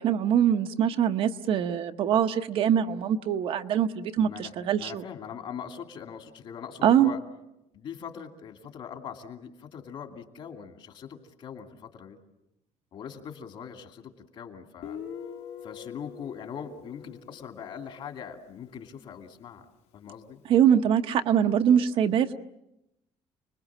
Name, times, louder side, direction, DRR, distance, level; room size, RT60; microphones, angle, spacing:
voice 1, 0.0-5.0 6.8-7.1 20.5-22.3, right 9 dB, 50° right, 8 dB, 0.9 m, -23 dB
voice 2, 4.2-4.5 4.8-7.2 7.7-12.2 12.9-15.0 15.6-19.7 19.9-20.4, left 7 dB, 50° left, 5 dB, 2.5 m, -41 dB
Guitar, 14.8-18.3, left 8 dB, 70° left, 1.8 m, -43 dB
30.0 x 21.0 x 7.4 m, 0.89 s
cardioid pair, 170°, 11 cm